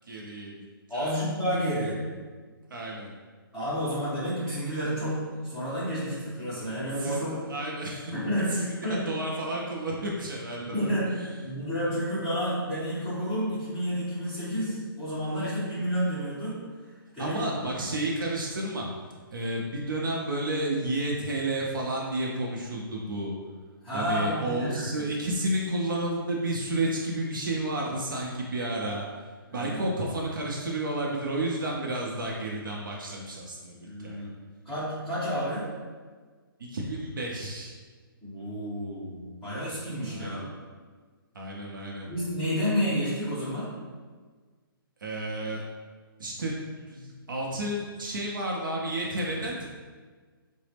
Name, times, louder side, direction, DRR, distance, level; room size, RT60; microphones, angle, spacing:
voice 1, 0.1-0.7 0.9-1.2 2.7-3.1 7.0-8.1 8.5-11.3 17.2-18.9 19.3-23.3 23.9-29.1 29.5-34.2 36.6-37.7 40.1-40.4 41.3-42.1 45.0-45.6 46.2-46.5 46.8-49.7, right 1 dB, 60° right, -2 dB, 0.5 m, -31 dB
voice 2, 0.9-2.0 3.5-7.3 8.1-9.1 10.6-11.1 11.4-16.6 17.1-17.5 23.8-25.0 29.5-29.8 33.8-34.3 34.6-35.7 38.2-40.5 42.1-43.7, equal, 5° right, -16 dB, 1.0 m, -30 dB
3.8 x 2.0 x 3.3 m, 1.5 s
hypercardioid pair, 175°, 12 cm